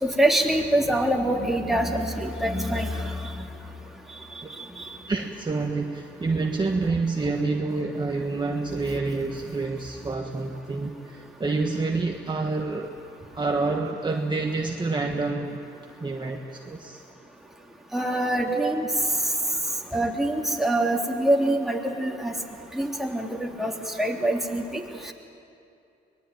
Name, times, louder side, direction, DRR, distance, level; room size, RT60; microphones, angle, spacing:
voice 1, 0.0-3.4 17.9-18.8 19.9-22.3 22.7-23.7 24.0-25.1, right 1 dB, ahead, 0 dB, 3.0 m, -25 dB
voice 2, 5.1-13.0 13.3-15.6 16.0-17.0 18.4-18.7, right 3 dB, 25° right, 2 dB, 1.5 m, -28 dB
23.5 x 20.0 x 9.2 m, 2.6 s
cardioid pair, 90°, 20 cm